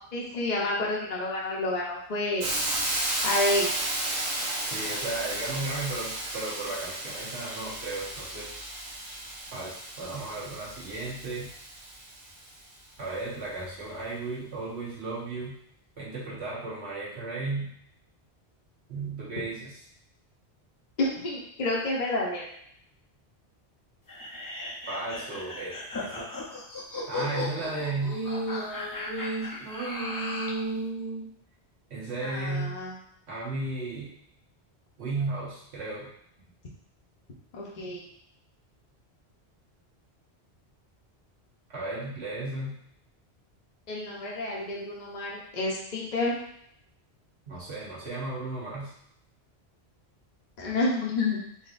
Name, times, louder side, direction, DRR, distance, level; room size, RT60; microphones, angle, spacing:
voice 1, 0.1-2.5 3.2-3.7 21.0-22.5 32.2-32.9 37.5-38.0 43.9-46.3 50.6-51.4, left 2 dB, 45° left, -4 dB, 0.8 m, -29 dB
Hiss, 2.4-12.3, right 1 dB, 45° right, 0.7 m, -33 dB
voice 2, 4.7-8.5 9.5-11.5 13.0-15.6 16.0-17.7 18.9-19.8 24.9-25.8 26.0-26.2 27.1-31.3 31.9-32.8 33.3-34.1 35.0-36.1 41.7-42.8 47.5-48.9, right 2 dB, 80° right, -6 dB, 1.5 m, -34 dB
sound 1, 24.1-30.6, left 2 dB, 25° left, 0.5 m, -36 dB
3.9 x 2.9 x 2.4 m, 0.70 s
omnidirectional pair, 1.1 m